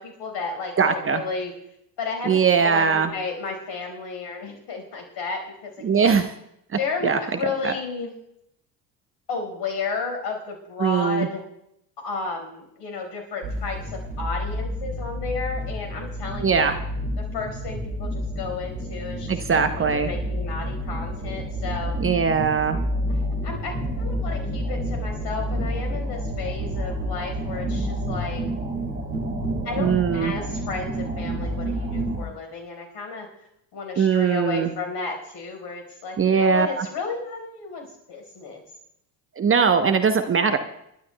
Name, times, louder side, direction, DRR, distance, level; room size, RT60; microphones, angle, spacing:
voice 1, 0.0-1.5 2.0-6.2 6.8-8.2 9.3-11.4 12.0-16.7 17.2-22.0 23.1-28.4 29.6-33.3 33.7-38.6, left 4 dB, 55° left, 4 dB, 5.0 m, -33 dB
voice 2, 0.8-1.2 2.2-3.1 5.8-6.3 7.0-7.2 7.6-7.7 10.8-11.3 16.4-16.8 19.3-20.1 22.0-22.8 29.8-30.3 34.0-34.7 36.2-36.9 39.4-40.6, right 6 dB, 25° right, 8 dB, 0.9 m, -20 dB
sound 1, 13.4-32.3, equal, 80° right, 2.4 m, -29 dB
28.0 x 12.5 x 2.3 m, 0.79 s
figure-of-eight pair, 60°, 50 cm